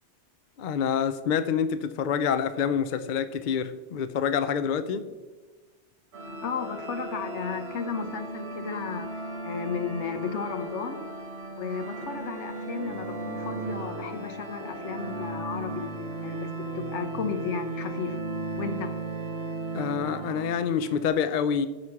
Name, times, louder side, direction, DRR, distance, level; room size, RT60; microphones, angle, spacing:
voice 1, 0.6-5.1 19.7-21.7, left 7 dB, 55° left, 0.6 m, -27 dB
sound 1, 6.1-21.1, right 2 dB, 70° right, 1.6 m, -36 dB
voice 2, 6.4-11.0 11.5-15.9 16.2-18.2 18.6-18.9, left 6 dB, 85° left, 1.2 m, -34 dB
14.0 x 4.9 x 5.8 m
omnidirectional pair, 1.2 m